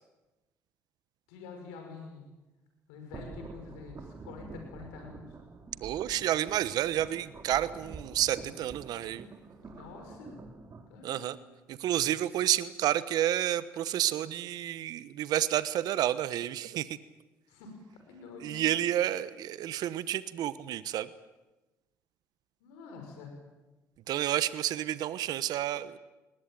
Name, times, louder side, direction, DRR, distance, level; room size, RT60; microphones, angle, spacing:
voice 1, 1.3-2.2 2.9-5.3 9.7-10.3 10.9-11.4 17.5-18.6 22.6-23.3, left 4 dB, 85° left, 3 dB, 5.8 m, -47 dB
sound 1, 3.1-10.9, right 4 dB, 40° right, 3.9 m, -47 dB
voice 2, 5.8-9.3 11.0-11.4 11.7-17.0 18.4-21.1 24.1-26.0, right 12 dB, 65° right, 15 dB, 1.0 m, -30 dB
21.5 x 19.5 x 9.0 m, 1.1 s
hypercardioid pair, 60°, 7 cm